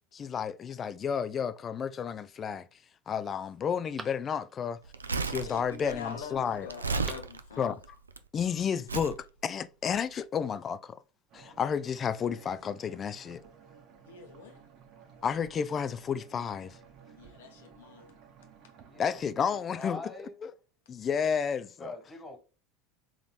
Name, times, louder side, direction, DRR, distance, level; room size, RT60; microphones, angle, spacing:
voice 1, 0.1-2.7 3.1-4.8 5.2-6.7 7.6-7.7 8.3-11.0 11.3-13.4 15.2-16.8 19.0-20.0 20.4-20.5 20.9-21.9, left 7 dB, 30° left, 0.3 m, -31 dB
Telephone, 1.7-2.2 2.8-2.9 3.3-4.8 6.8-7.4 7.7-7.8, right 3 dB, 20° right, 0.5 m, -49 dB
Crumpling crinkling, 4.8-8.2 8.9-9.2 9.9-10.1, right 4 dB, 80° right, 0.3 m, -34 dB
voice 2, 5.4-7.8 14.1-14.6 17.2-18.1, left 7 dB, 70° left, 0.9 m, -44 dB
sound 1, 11.3-19.3, right 6 dB, 50° right, 0.9 m, -55 dB
voice 3, 18.9-20.3 21.8-22.4, left 2 dB, 15° left, 1.7 m, -43 dB
4.0 x 3.6 x 2.2 m
figure-of-eight pair, 75°, 0 cm